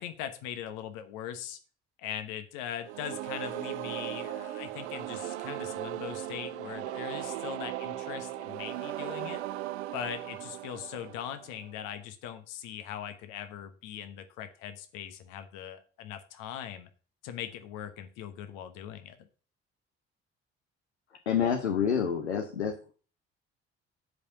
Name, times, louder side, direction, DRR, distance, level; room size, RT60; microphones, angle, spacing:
voice 1, 0.0-1.6 2.0-9.4 9.9-16.9 17.2-19.3, left 10 dB, 65° left, 9 dB, 1.2 m, -40 dB
sound 1, 2.8-11.7, right 14 dB, 80° right, 0.5 m, -37 dB
voice 2, 21.3-22.9, left 7 dB, 85° left, 4 dB, 0.8 m, -28 dB
8.2 x 5.2 x 7.0 m, 0.38 s
figure-of-eight pair, 45°, 33 cm